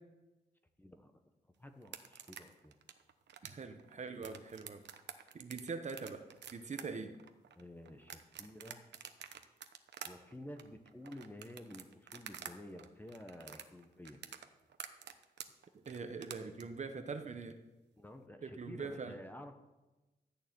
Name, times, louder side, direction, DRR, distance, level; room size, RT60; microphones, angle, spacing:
voice 1, 0.8-1.1 1.6-2.8 7.6-8.8 10.0-14.2 18.0-19.5, left 1 dB, 10° left, 6 dB, 0.9 m, -51 dB
sound 1, 1.8-12.5 12.8-16.6, right 8 dB, 85° right, 1.0 m, -49 dB
voice 2, 3.4-4.8 5.3-6.2 6.5-7.1 15.8-17.5 18.4-19.2, right 4 dB, 40° right, 7 dB, 1.1 m, -43 dB
13.5 x 6.7 x 9.4 m, 1.1 s
wide cardioid pair, 155°, 18 cm